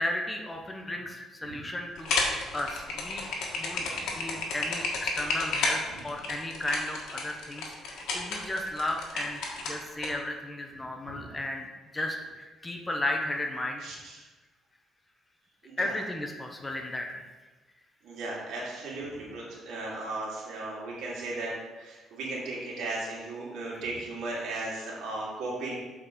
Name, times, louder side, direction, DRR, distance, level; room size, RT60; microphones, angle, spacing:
voice 1, 0.0-2.1 2.5-3.3 3.6-3.9 4.2-11.7 11.9-13.8 15.8-17.3, left 1 dB, 15° left, 2 dB, 0.8 m, -34 dB
sound 1, 2.0-10.1, left 3 dB, 75° left, 1.5 m, -31 dB
voice 2, 13.8-14.3 15.6-15.9 18.0-25.7, right 2 dB, 75° right, -4 dB, 2.5 m, -36 dB
7.0 x 4.3 x 5.1 m, 1.2 s
cardioid pair, 120°, 0 cm